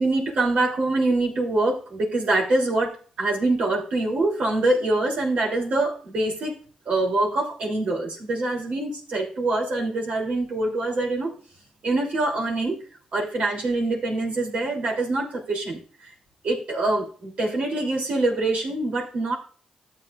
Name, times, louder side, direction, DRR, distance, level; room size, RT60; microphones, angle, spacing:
voice 1, 0.0-6.6 6.8-11.3 11.8-12.8 13.1-16.1 16.4-19.3, right 2 dB, 70° right, -2 dB, 3.0 m, -24 dB
13.0 x 7.7 x 2.5 m, 0.41 s
cardioid pair, 60°, 2 cm